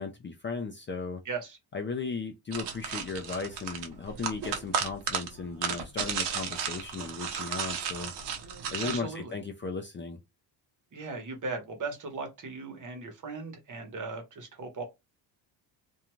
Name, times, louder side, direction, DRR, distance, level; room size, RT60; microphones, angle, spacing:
voice 1, 0.0-1.2 1.7-8.1 8.7-10.2, left 4 dB, 25° left, 0.4 m, -36 dB
voice 2, 1.2-1.6 8.8-9.4 10.9-14.8, right 4 dB, 40° right, 1.1 m, -38 dB
sound 1, 2.5-9.0, right 7 dB, 60° right, 0.8 m, -34 dB
2.5 x 2.3 x 3.0 m
cardioid pair, 110°, 45 cm